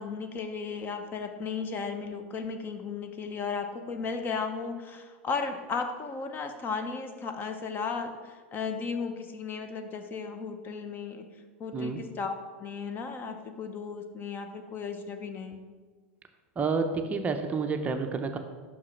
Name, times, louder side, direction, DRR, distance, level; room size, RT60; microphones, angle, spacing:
voice 1, 0.0-11.3 11.6-15.6, left 5 dB, 30° left, 7 dB, 0.7 m, -35 dB
voice 2, 16.6-18.4, right 4 dB, 20° right, 6 dB, 0.5 m, -29 dB
5.7 x 4.7 x 5.7 m, 1.4 s
hypercardioid pair, 115°, 7 cm